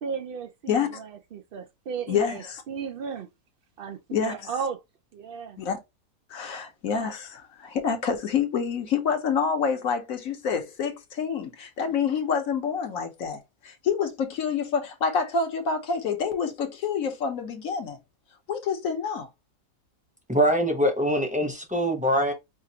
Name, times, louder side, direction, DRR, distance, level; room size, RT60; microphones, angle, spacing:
voice 1, 0.0-3.3 3.8-4.8 5.1-5.6, right 6 dB, 80° right, 0.5 m, -35 dB
voice 2, 2.1-2.6 4.1-4.3 5.6-5.8 6.3-18.0 18.5-19.3, left 6 dB, 65° left, 1.3 m, -27 dB
voice 3, 20.3-22.3, equal, 5° right, 0.7 m, -23 dB
5.1 x 2.5 x 2.8 m
omnidirectional pair, 1.5 m